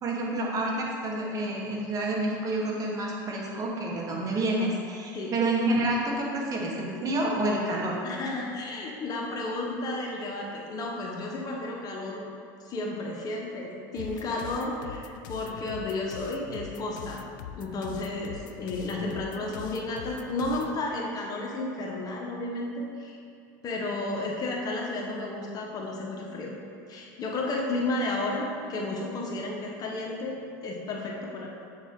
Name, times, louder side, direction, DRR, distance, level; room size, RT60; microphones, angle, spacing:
voice 1, 0.0-8.0, right 1 dB, 35° right, -2 dB, 1.2 m, -28 dB
voice 2, 8.0-12.2 12.7-17.2 17.5-23.2 23.6-26.5 26.9-30.4 30.6-31.5, left 2 dB, 40° left, -1 dB, 1.0 m, -32 dB
sound 1, 14.0-20.8, left 10 dB, 80° left, 0.4 m, -43 dB
7.2 x 4.2 x 3.7 m, 2.3 s
supercardioid pair, 100°, 10 cm